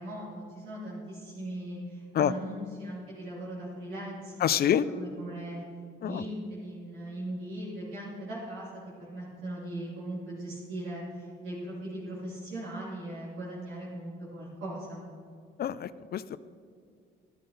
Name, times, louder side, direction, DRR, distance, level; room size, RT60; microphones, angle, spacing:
voice 1, 0.0-4.5 5.0-5.6 6.0-15.1, right 1 dB, 85° right, -7 dB, 2.8 m, -39 dB
voice 2, 4.4-4.9 6.0-6.2 15.6-16.4, left 10 dB, 50° left, 16 dB, 0.4 m, -27 dB
12.5 x 10.0 x 4.0 m, 2.2 s
cardioid pair, 90°, 20 cm